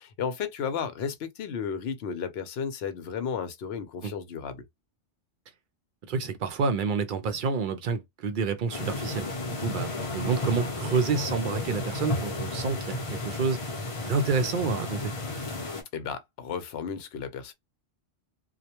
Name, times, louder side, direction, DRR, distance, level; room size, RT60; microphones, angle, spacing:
voice 1, 0.0-4.6 15.9-17.5, left 7 dB, 65° left, 0.8 m, -33 dB
voice 2, 6.1-13.6 14.0-15.1, right 5 dB, 60° right, 0.5 m, -28 dB
sound 1, 8.7-15.8, left 2 dB, 35° left, 0.6 m, -33 dB
2.3 x 2.1 x 2.8 m
omnidirectional pair, 1.2 m